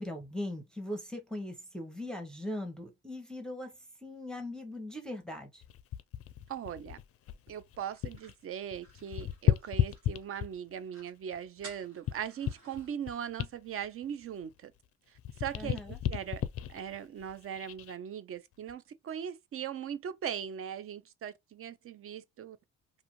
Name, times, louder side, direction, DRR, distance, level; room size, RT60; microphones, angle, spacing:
voice 1, 0.0-5.6 15.5-16.0, left 1 dB, ahead, 0.7 m, -40 dB
sound 1, 5.6-8.3 8.6-10.8 11.3-14.9 15.1-17.9 18.5-18.7, left 11 dB, 50° left, 0.4 m, -34 dB
voice 2, 6.5-7.0 7.5-14.7 15.4-16.4 16.7-22.6, right 9 dB, 45° right, 0.5 m, -39 dB
sound 2, 7.9-10.3 10.6-10.7 10.9-11.2 11.6-12.9, right 2 dB, 70° right, 1.4 m, -55 dB
2.6 x 2.4 x 2.9 m
cardioid pair, 90°, 30 cm